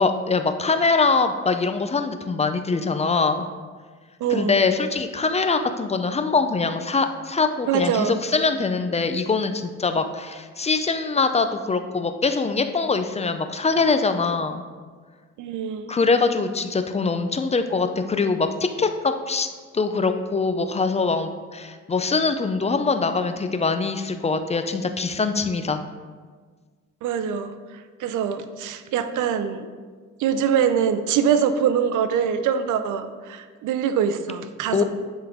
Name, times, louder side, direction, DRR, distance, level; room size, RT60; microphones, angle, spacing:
voice 1, 0.0-3.5 4.3-9.5 9.8-14.6 15.9-19.5 19.7-25.8 34.7-34.8, left 4 dB, 20° left, 8 dB, 0.4 m, -23 dB
voice 2, 4.2-4.6 7.6-8.2 15.4-15.9 27.0-27.6 28.0-29.7 30.2-34.8, right 7 dB, 80° right, 11 dB, 0.5 m, -23 dB
9.6 x 3.8 x 3.6 m, 1.5 s
cardioid pair, 90°, 30 cm